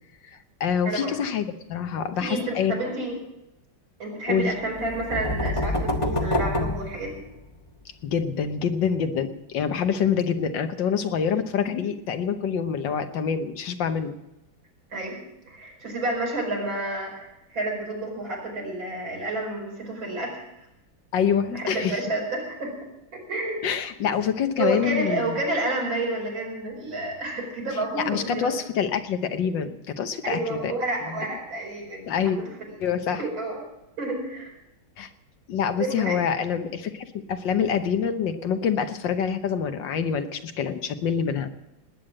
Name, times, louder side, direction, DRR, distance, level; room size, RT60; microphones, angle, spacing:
voice 1, 0.6-2.8 4.3-4.5 8.0-14.2 21.1-22.0 23.6-25.4 27.9-30.8 32.1-32.4 32.8-33.2 35.0-35.1 35.5-41.5, left 7 dB, 70° left, 8 dB, 1.7 m, -26 dB
voice 2, 1.9-3.2 4.0-7.2 14.9-15.1 15.5-20.4 21.5-22.7 23.1-23.6 24.0-28.5 30.2-32.1 33.2-33.6 34.0-34.5 35.8-36.2, right 2 dB, 75° right, -1 dB, 5.9 m, -30 dB
sound 1, 4.8-7.7, left 1 dB, 20° left, 1.1 m, -27 dB
19.0 x 9.4 x 7.7 m, 0.91 s
omnidirectional pair, 2.1 m